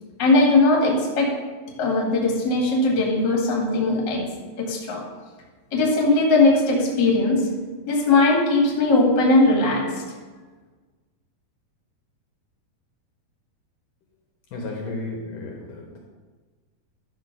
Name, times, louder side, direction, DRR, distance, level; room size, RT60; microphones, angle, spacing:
voice 1, 0.2-1.3 1.8-4.2 4.6-5.0 5.7-7.5 7.9-9.8, left 2 dB, 35° left, -2 dB, 2.2 m, -19 dB
voice 2, 14.5-16.0, left 2 dB, 65° left, -1 dB, 2.6 m, -33 dB
12.0 x 4.4 x 6.0 m, 1.4 s
omnidirectional pair, 4.4 m